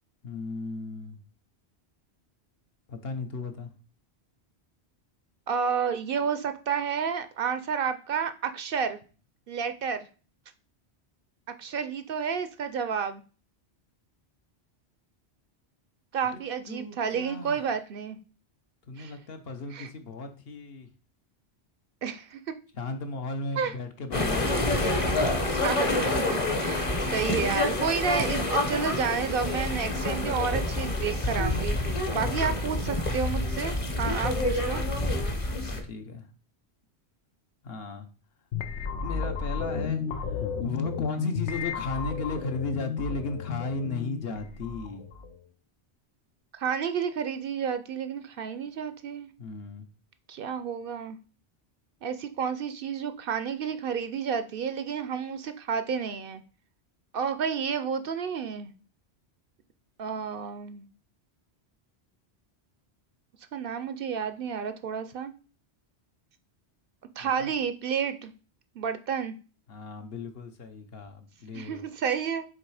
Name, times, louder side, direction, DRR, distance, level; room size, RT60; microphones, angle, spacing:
voice 1, 0.2-1.2 2.9-3.7 16.3-16.4 16.7-17.6 18.9-20.9 22.7-24.9 32.1-32.8 34.0-34.6 35.0-36.3 37.6-38.1 38.9-45.0 49.4-49.9 67.2-67.5 69.7-71.8, left 3 dB, 65° left, 1.1 m, -36 dB
voice 2, 5.5-9.0 9.5-10.1 11.6-13.2 16.1-18.2 19.0-19.1 19.7-19.9 22.0-22.4 23.6-23.7 25.5-34.8 46.5-49.3 50.3-51.2 52.0-56.4 57.1-58.7 60.0-60.8 63.5-65.3 67.2-68.3 68.8-69.3 71.5-72.4, right 6 dB, 65° right, 0.7 m, -31 dB
sound 1, 24.1-35.8, left 2 dB, 35° left, 0.9 m, -27 dB
sound 2, 38.5-45.4, left 6 dB, 90° left, 1.0 m, -33 dB
7.4 x 3.2 x 4.7 m
omnidirectional pair, 1.1 m